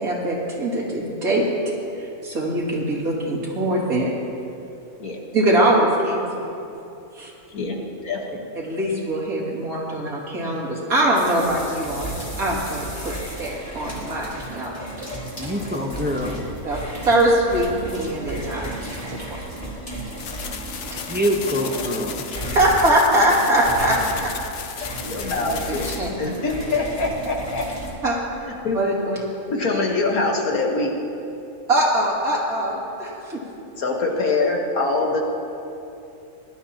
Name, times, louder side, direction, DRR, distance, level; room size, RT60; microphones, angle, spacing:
voice 1, 0.0-1.5 1.9-4.1 5.3-6.3 7.1-7.3 8.5-12.1 12.4-15.1 16.6-19.4 20.8-21.2 22.5-24.3 24.9-25.1 25.3-26.1 28.0-28.2 28.7-29.2 31.7-33.4, right 1 dB, 80° right, -5 dB, 3.1 m, -22 dB
voice 2, 8.0-8.4 25.0-27.7 28.6-28.8 29.5-30.9 33.8-35.2, left 3 dB, 85° left, 0 dB, 1.9 m, -24 dB
sound 1, 11.1-28.0, right 1 dB, 25° left, 2.8 m, -34 dB
voice 3, 15.4-16.4 21.1-22.2, equal, 10° right, 1 dB, 0.7 m, -25 dB
sound 2, 20.2-26.0, left 7 dB, 60° left, 1.0 m, -35 dB
20.0 x 12.0 x 2.9 m, 2.8 s
omnidirectional pair, 1.5 m